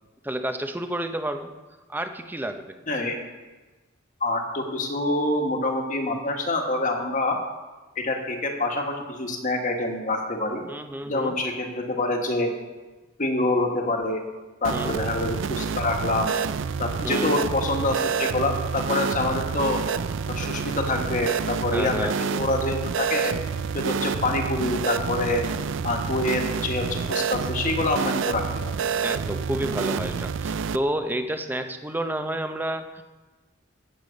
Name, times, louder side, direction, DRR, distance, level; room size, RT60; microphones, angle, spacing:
voice 1, 0.2-1.5 1.9-2.8 10.7-11.4 14.7-15.0 17.0-17.3 21.7-22.2 29.0-33.0, right 1 dB, 10° right, 7 dB, 0.7 m, -30 dB
voice 2, 2.9-3.2 4.2-7.4 7.9-10.6 11.1-12.5 13.2-14.2 14.6-16.3 16.8-19.8 20.3-23.3 23.7-25.4 25.8-28.7, left 2 dB, 40° left, 2 dB, 1.6 m, -26 dB
sound 1, 14.6-30.8, right 6 dB, 65° right, 0.4 m, -28 dB
14.0 x 8.2 x 5.2 m, 1.2 s
head